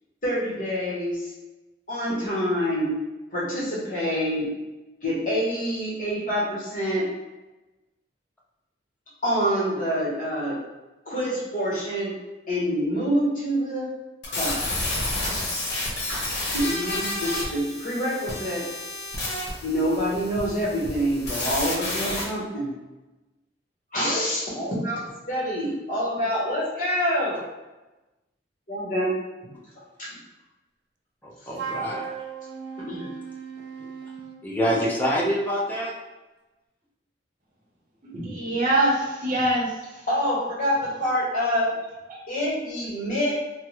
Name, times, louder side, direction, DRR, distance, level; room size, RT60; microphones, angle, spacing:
voice 1, 0.2-1.3 1.9-3.0 3.3-4.5 5.0-7.1 9.2-10.6 11.1-12.1 12.5-13.9 14.3-14.7 16.5-18.6 19.6-22.7 23.9-27.4 28.7-29.1 29.4-29.5 30.0-30.1 32.9-33.1 40.1-41.7 42.3-43.3, equal, 45° left, -7 dB, 1.1 m, -26 dB
sound 1, 14.2-22.2, left 2 dB, 70° left, 0.9 m, -30 dB
voice 2, 31.2-32.2 33.8-33.9 34.4-35.9, equal, 10° left, -5 dB, 0.5 m, -26 dB
Wind instrument woodwind instrument, 31.5-34.4, right 5 dB, 75° right, 0.4 m, -36 dB
voice 3, 38.0-40.0 42.1-42.2, right 1 dB, 45° right, -3 dB, 0.7 m, -24 dB
3.4 x 2.0 x 3.0 m, 1.1 s
head